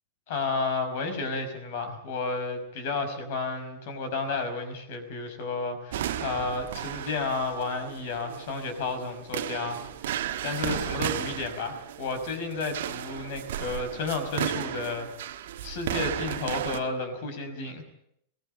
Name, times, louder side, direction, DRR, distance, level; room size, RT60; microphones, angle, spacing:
voice 1, 0.3-10.2 10.4-15.3 15.6-17.8, left 3 dB, 50° left, 9 dB, 5.4 m, -32 dB
sound 1, 5.9-16.8, right 11 dB, 55° right, 1.5 m, -34 dB
23.0 x 18.5 x 8.8 m, 0.73 s
figure-of-eight pair, 90°, 0 cm